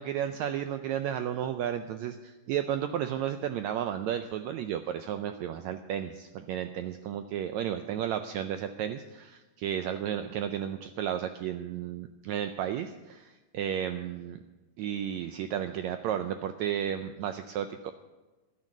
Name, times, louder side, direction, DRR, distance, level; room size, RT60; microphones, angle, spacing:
voice 1, 0.0-14.4 14.8-17.9, right 10 dB, 90° right, 9 dB, 1.6 m, -33 dB
11.5 x 9.8 x 7.3 m, 1.2 s
omnidirectional pair, 3.8 m